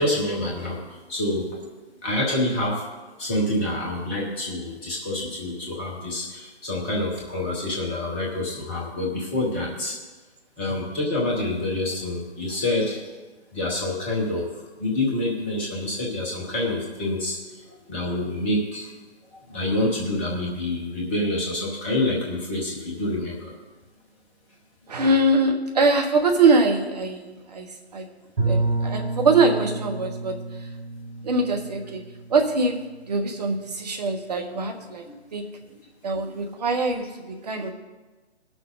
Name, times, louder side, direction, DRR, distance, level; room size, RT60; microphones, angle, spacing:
voice 1, 0.0-1.7 2.0-2.8 3.2-10.0 10.6-13.0 13.5-18.9 19.5-23.5 35.1-35.2 36.1-36.3, left 1 dB, 10° left, -2 dB, 0.7 m, -27 dB
voice 2, 24.9-28.1 28.4-30.7 31.2-32.0 32.3-35.1 35.3-35.5 36.0-37.7, right 3 dB, 40° right, 4 dB, 1.1 m, -23 dB
Bowed string instrument, 28.4-33.2, right 2 dB, 65° right, 3.6 m, -29 dB
18.0 x 6.3 x 3.9 m, 1.3 s
figure-of-eight pair, 140°, 33 cm